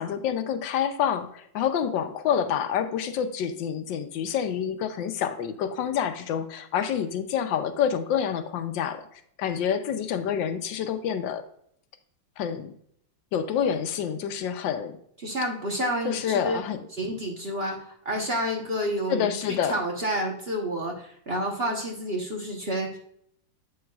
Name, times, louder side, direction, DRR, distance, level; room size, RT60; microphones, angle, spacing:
voice 1, 0.0-9.0 9.4-11.4 12.4-12.7 13.3-15.0 16.0-16.8 19.1-19.8, left 8 dB, 70° left, 9 dB, 1.2 m, -27 dB
voice 2, 15.2-16.6 16.9-23.0, equal, 40° right, 0 dB, 0.9 m, -29 dB
8.0 x 6.3 x 2.3 m, 0.67 s
omnidirectional pair, 2.3 m